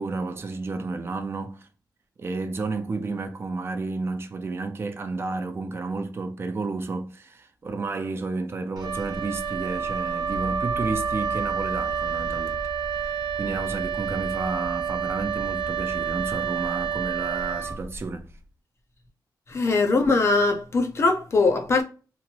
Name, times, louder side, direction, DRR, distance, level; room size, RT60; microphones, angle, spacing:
voice 1, 0.0-1.7 2.2-12.6 12.9-18.3, right 3 dB, 35° right, 0.5 m, -31 dB
Wind instrument woodwind instrument, 8.8-18.2, right 6 dB, 70° right, 0.8 m, -29 dB
voice 2, 19.5-21.8, left 3 dB, 40° left, 0.5 m, -21 dB
3.0 x 2.5 x 2.7 m
wide cardioid pair, 170°, 7 cm